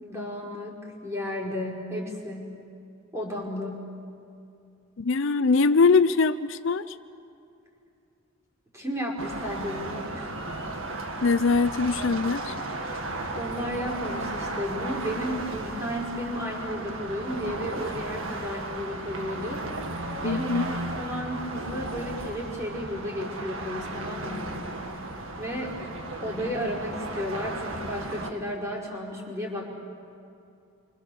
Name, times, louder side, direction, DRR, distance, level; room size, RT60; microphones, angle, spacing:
voice 1, 0.0-2.6 3.1-3.9 8.7-10.3 13.0-19.6 20.2-24.6 25.4-25.8 26.2-29.7, equal, 15° right, -3 dB, 4.8 m, -33 dB
voice 2, 5.0-7.0 11.2-12.6 20.2-20.7, left 4 dB, 60° left, 13 dB, 0.6 m, -22 dB
sound 1, 9.2-28.3, right 2 dB, 65° right, 2.0 m, -35 dB
29.5 x 25.0 x 7.0 m, 2.6 s
head